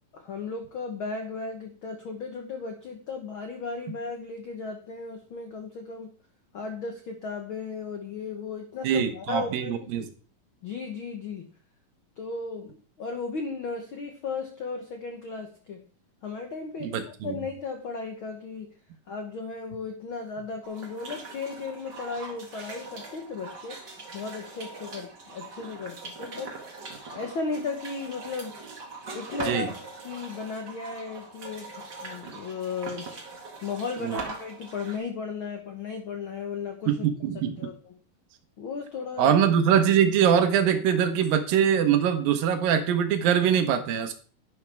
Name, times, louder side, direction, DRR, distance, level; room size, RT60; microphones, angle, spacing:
voice 1, 0.1-6.1 6.5-10.1 10.6-11.5 12.2-15.8 16.2-18.7 19.1-23.8 24.1-26.6 27.1-28.6 29.1-33.1 33.6-37.0 37.6-37.9 38.6-39.4, left 4 dB, 75° left, 4 dB, 1.1 m, -35 dB
voice 2, 8.8-10.1 16.8-17.4 29.4-29.7 34.0-34.2 36.9-37.6 39.2-44.1, right 8 dB, 80° right, 7 dB, 2.8 m, -23 dB
sound 1, 20.6-35.0, right 3 dB, 35° right, 2.1 m, -41 dB
11.0 x 10.0 x 3.5 m, 0.41 s
omnidirectional pair, 4.0 m